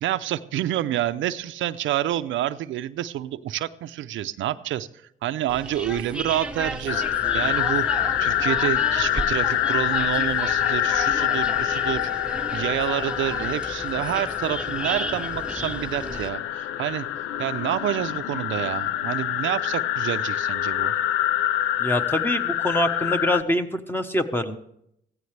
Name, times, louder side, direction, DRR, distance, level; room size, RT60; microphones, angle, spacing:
voice 1, 0.0-4.9 5.2-7.9 8.2-12.1 12.5-17.1 17.4-20.9, right 12 dB, 75° right, 11 dB, 0.6 m, -28 dB
sound 1, 5.5-16.3, right 2 dB, 5° right, 0.9 m, -34 dB
sound 2, 6.9-23.4, left 12 dB, 85° left, 0.5 m, -26 dB
voice 2, 21.8-24.6, left 1 dB, 10° left, 8 dB, 1.1 m, -24 dB
16.0 x 14.5 x 3.3 m, 0.75 s
cardioid pair, 90°, 20 cm